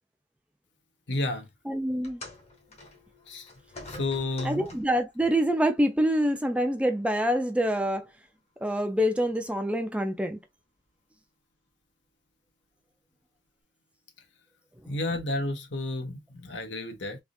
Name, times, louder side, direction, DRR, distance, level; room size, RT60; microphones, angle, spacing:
voice 1, 1.1-1.5 3.3-3.5 3.9-4.6 14.9-17.2, left 2 dB, 75° left, 0.9 m, -31 dB
voice 2, 1.7-2.2 4.4-8.1 8.6-10.4, equal, 5° right, 0.4 m, -26 dB
sound 1, 2.0-5.1 6.1-6.2 7.1-7.2, left 2 dB, 35° left, 0.9 m, -46 dB
3.5 x 2.4 x 2.6 m
head